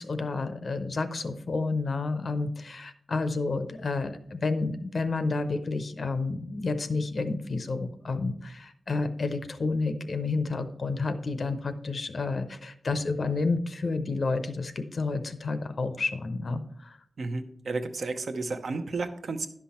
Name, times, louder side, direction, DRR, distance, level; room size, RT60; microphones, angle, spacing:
voice 1, 0.0-17.0, left 3 dB, 50° left, 9 dB, 0.6 m, -30 dB
voice 2, 17.2-19.5, right 3 dB, 60° right, 8 dB, 0.7 m, -32 dB
11.0 x 5.8 x 4.2 m, 0.67 s
wide cardioid pair, 165°, 0 cm